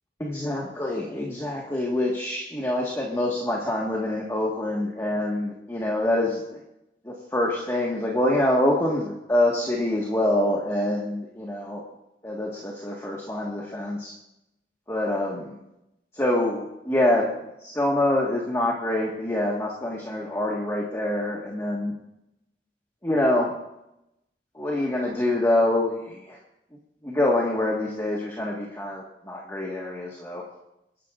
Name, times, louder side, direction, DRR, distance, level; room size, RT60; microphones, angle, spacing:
voice 1, 0.2-6.6 7.0-11.8 12.2-14.1 14.9-15.5 16.1-17.3 17.6-21.9 23.0-23.5 24.5-26.4 27.0-30.4, left 1 dB, 15° left, -3 dB, 1.6 m, -25 dB
28.0 x 11.5 x 2.5 m, 0.88 s
head